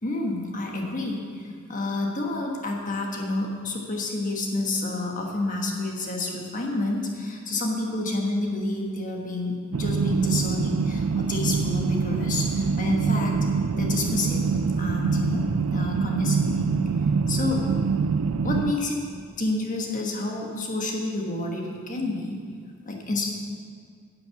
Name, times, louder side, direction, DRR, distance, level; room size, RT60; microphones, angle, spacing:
voice 1, 0.0-13.4 13.7-14.5 14.8-16.8 17.3-17.6 18.4-19.0 19.4-22.4 22.8-23.3, left 2 dB, 35° left, 0 dB, 1.4 m, -29 dB
sound 1, 9.7-18.7, right 5 dB, 75° right, 0.4 m, -25 dB
10.5 x 7.7 x 7.1 m, 2.1 s
head